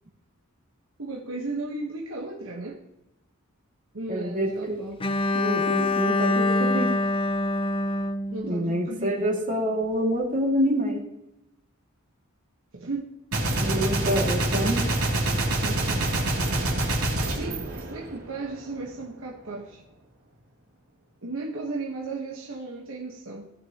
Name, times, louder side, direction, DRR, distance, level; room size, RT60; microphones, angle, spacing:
voice 1, 1.0-2.8 3.9-5.1 8.3-9.4 12.7-13.0 17.3-19.8 21.2-23.5, right 3 dB, 65° right, -2 dB, 1.3 m, -35 dB
voice 2, 4.1-4.8 5.3-6.9 8.4-11.0 13.6-14.8 15.6-16.0, equal, 40° right, -1 dB, 2.3 m, -27 dB
Bowed string instrument, 5.0-9.1, left 2 dB, 25° left, 0.4 m, -25 dB
Gunshot gunfire, 13.3-18.5, right 1 dB, 90° right, 2.9 m, -26 dB
18.0 x 6.5 x 3.0 m, 0.91 s
head